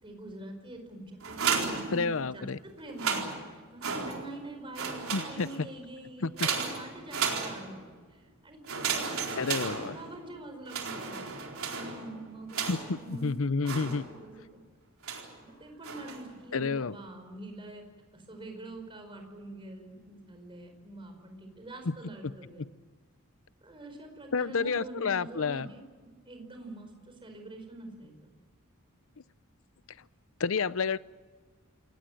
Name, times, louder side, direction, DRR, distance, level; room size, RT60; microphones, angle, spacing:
voice 1, 0.0-7.8 8.1-11.4 11.7-14.5 15.1-17.8 18.1-22.7 23.6-28.3, right 2 dB, 25° right, 5 dB, 5.0 m, -45 dB
sound 1, 1.2-2.4 2.8-4.4 4.7-5.7 6.4-7.9 8.6-10.3 10.7-13.1 13.6-14.4 15.0-15.4 15.8-16.3, right 5 dB, 75° right, 4.2 m, -34 dB
voice 2, 1.9-2.6 5.1-5.7 6.2-6.5 9.4-10.0 12.7-14.0 16.5-17.0 24.3-25.7 30.4-31.0, left 4 dB, 65° left, 17 dB, 0.7 m, -30 dB
28.0 x 18.5 x 7.8 m, 1.4 s
head